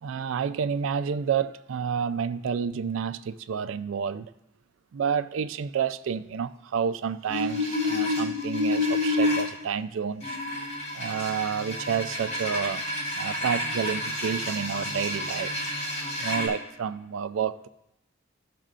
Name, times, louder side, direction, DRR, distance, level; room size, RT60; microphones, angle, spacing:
voice 1, 0.0-4.3 4.9-10.4 10.9-12.8 13.1-15.5 16.2-17.7, right 7 dB, 75° right, 13 dB, 0.3 m, -29 dB
sound 1, 7.3-9.4 10.2-16.5, left 2 dB, 40° left, 3.2 m, -29 dB
15.0 x 6.4 x 2.5 m, 0.87 s
head